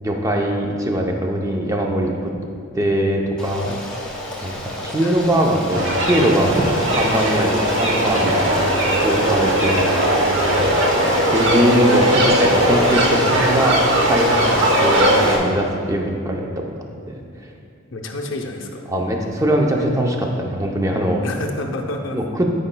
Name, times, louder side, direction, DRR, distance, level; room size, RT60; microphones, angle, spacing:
voice 1, 0.0-2.3 2.7-3.7 4.4-6.6 7.0-9.9 11.3-16.5 17.1-17.2 18.9-21.2 22.1-22.5, equal, 15° right, 1 dB, 0.6 m, -21 dB
Stream, 3.4-15.4, left 1 dB, 5° left, 1.0 m, -30 dB
sound 1, 5.7-15.4, right 1 dB, 60° right, 0.9 m, -18 dB
voice 2, 17.9-18.8 21.2-22.2, left 2 dB, 60° left, 2 dB, 0.6 m, -29 dB
12.5 x 5.1 x 2.2 m, 2.3 s
head